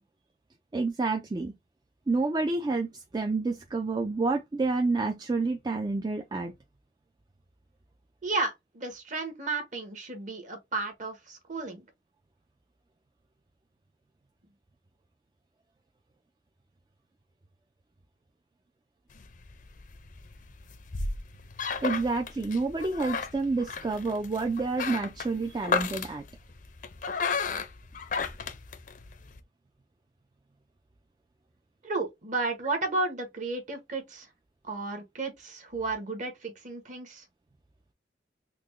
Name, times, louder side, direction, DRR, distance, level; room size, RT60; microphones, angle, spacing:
voice 1, 0.7-1.5 2.1-6.5 21.8-26.2, right 3 dB, 25° right, 0.3 m, -29 dB
voice 2, 8.2-11.9 31.8-34.3 34.6-37.2, right 3 dB, 45° right, 1.1 m, -33 dB
sound 1, 19.1-29.4, left 5 dB, 45° left, 0.5 m, -34 dB
4.0 x 2.1 x 3.1 m
head